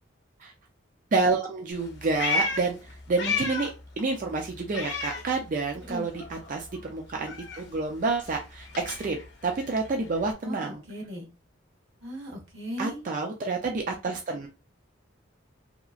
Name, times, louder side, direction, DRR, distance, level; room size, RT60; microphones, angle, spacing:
voice 1, 1.1-3.7 4.0-10.8 12.8-14.5, right 3 dB, 40° right, 2 dB, 0.4 m, -29 dB
Meow, 1.7-3.9 4.2-5.9 6.1-10.3, left 4 dB, 60° left, 0.6 m, -34 dB
voice 2, 10.4-11.3 12.0-13.0, equal, 80° right, 2 dB, 1.0 m, -37 dB
2.8 x 2.4 x 2.4 m, 0.29 s
head